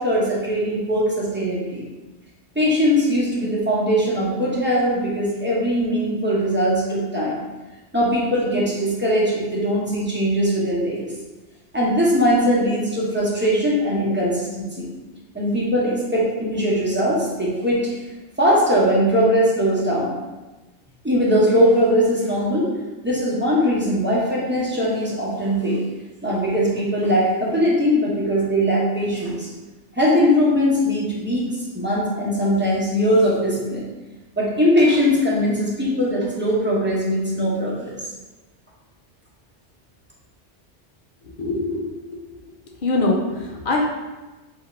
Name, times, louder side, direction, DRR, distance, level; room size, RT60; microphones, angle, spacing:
voice 1, 0.0-1.8 2.5-7.4 7.9-11.1 11.7-14.9 15.3-17.9 18.4-20.2 21.0-22.7 23.0-25.8 26.2-29.5 29.9-31.5 31.7-33.8 34.4-38.0, equal, 10° right, -6 dB, 0.9 m, -20 dB
voice 2, 41.4-42.0 42.8-43.9, left 2 dB, 55° left, 0 dB, 0.7 m, -22 dB
3.6 x 2.7 x 4.3 m, 1.2 s
omnidirectional pair, 1.2 m